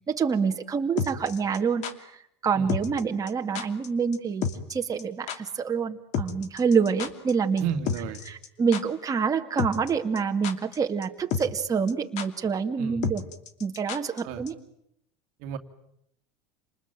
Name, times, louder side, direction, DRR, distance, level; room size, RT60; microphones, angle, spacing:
voice 1, 0.1-1.8 2.4-7.7 8.3-13.2 13.6-14.6, right 6 dB, 25° right, 3 dB, 2.3 m, -27 dB
sound 1, 1.0-1.9 2.7-3.0 3.3-3.4 3.6-4.2 4.4-4.7 5.0-5.1 5.3-5.4 6.1-7.3 7.6-7.7 7.9-8.5 8.7-8.8 9.6-9.9 10.2-10.8 11.0-11.1 11.3-11.6 11.9-12.0 12.2-12.3 13.0-14.2 14.5-14.6, left 6 dB, 55° left, 2.8 m, -30 dB
voice 2, 7.6-8.3 12.8-13.1 14.2-14.4 15.4-15.6, right 7 dB, 65° right, 7 dB, 2.2 m, -32 dB
28.5 x 20.5 x 9.2 m, 0.77 s
supercardioid pair, 105°, 14 cm